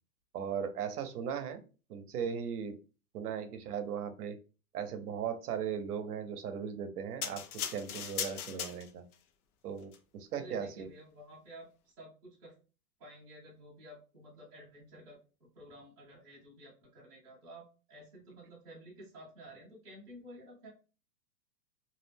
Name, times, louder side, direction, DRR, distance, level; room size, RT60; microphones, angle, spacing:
voice 1, 0.3-1.6 1.9-2.8 3.1-4.4 4.7-7.4 7.7-9.0 9.6-10.9, right 7 dB, 70° right, 8 dB, 0.6 m, -37 dB
sound 1, 7.2-9.2 9.8-10.0, left 8 dB, 70° left, 0.6 m, -38 dB
voice 2, 10.3-12.5 13.0-20.7, right 1 dB, 10° right, -9 dB, 0.6 m, -52 dB
2.4 x 2.0 x 3.3 m, 0.34 s
supercardioid pair, 170°, 47 cm